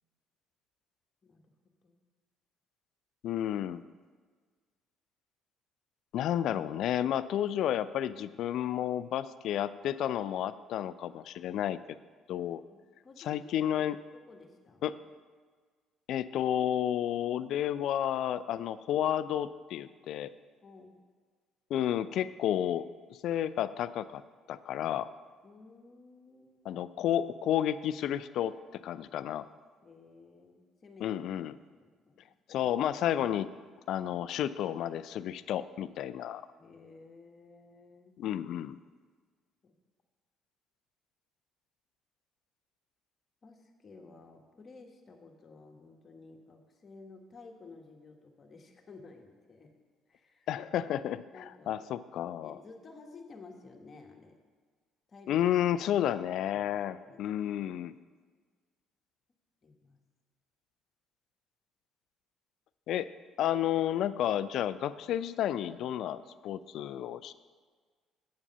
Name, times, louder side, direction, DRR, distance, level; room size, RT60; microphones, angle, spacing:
voice 1, 1.2-1.5 1.8-2.0 12.7-13.8 14.1-15.0 20.6-21.0 25.4-26.7 29.8-31.1 31.7-32.2 36.6-38.1 39.6-39.7 43.4-49.7 50.1-50.5 51.3-51.9 52.4-54.4 55.1-55.4 56.5-56.6 57.1-57.2 59.6-60.0, left 3 dB, 40° left, 2 dB, 1.5 m, -54 dB
voice 2, 3.2-3.8 6.1-11.8 12.3-12.6 13.2-14.0 14.8-15.0 16.1-20.3 21.7-24.2 24.5-25.1 26.7-29.4 31.0-31.6 32.5-33.5 33.9-36.4 38.2-38.8 50.5-52.6 55.3-57.9 62.9-63.1 63.4-67.3, left 11 dB, 65° left, 15 dB, 0.3 m, -31 dB
8.5 x 7.1 x 5.6 m, 1.5 s
hypercardioid pair, 60°, 0 cm